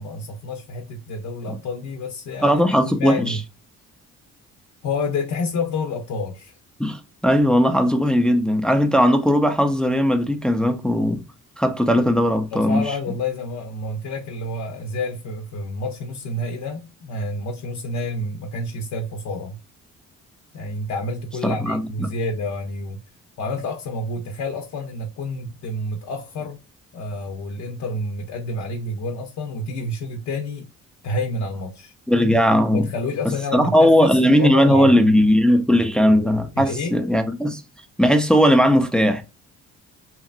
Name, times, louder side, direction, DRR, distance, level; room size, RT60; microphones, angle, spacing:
voice 1, 0.0-2.6 2.9-3.4 4.8-6.6 12.5-19.6 20.5-23.0 23.4-26.6 26.9-30.7 31.0-31.9 32.7-35.0 36.6-37.0, left 2 dB, 65° left, 0.6 m, -29 dB
voice 2, 2.4-3.4 6.8-11.2 11.6-12.8 21.4-22.1 32.1-32.9 33.5-37.6 38.0-39.2, equal, 5° left, 0.4 m, -18 dB
2.9 x 2.4 x 2.3 m
cardioid pair, 90°, 30 cm